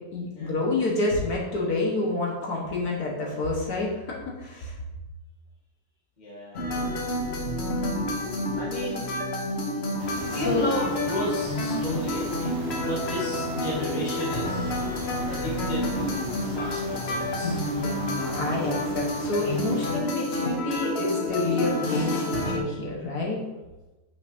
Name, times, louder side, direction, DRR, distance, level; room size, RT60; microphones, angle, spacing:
voice 1, 0.1-4.8 10.1-10.7 17.4-23.4, left 2 dB, 80° left, -3 dB, 1.8 m, -28 dB
voice 2, 6.2-6.6 8.5-9.1 10.2-14.8 15.3-17.6, left 1 dB, 30° left, -5 dB, 1.6 m, -33 dB
sound 1, 6.5-22.6, left 1 dB, 50° left, 1.0 m, -29 dB
sound 2, 10.0-20.0, right 1 dB, 50° right, 1.8 m, -40 dB
8.0 x 5.6 x 2.7 m, 1.1 s
omnidirectional pair, 1.6 m